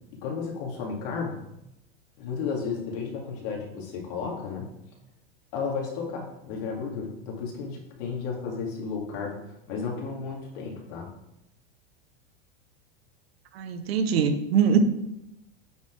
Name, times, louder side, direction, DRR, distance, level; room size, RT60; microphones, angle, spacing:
voice 1, 0.1-1.4 2.2-4.7 5.5-11.1, left 5 dB, 65° left, -1 dB, 2.4 m, -33 dB
voice 2, 13.5-14.8, right 7 dB, 85° right, 8 dB, 1.0 m, -23 dB
8.4 x 4.1 x 4.7 m, 0.85 s
supercardioid pair, 125°, 30 cm